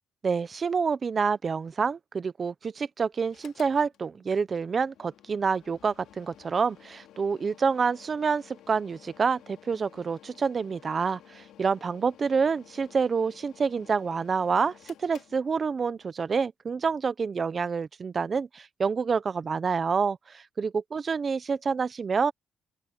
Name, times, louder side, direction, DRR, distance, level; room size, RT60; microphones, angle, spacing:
voice 1, 0.2-22.3, right 5 dB, 35° right, 0.8 m, -28 dB
Mechanical fan, 3.2-16.1, left 11 dB, 80° left, 2.6 m, -55 dB
open air
cardioid pair, 110°, 0 cm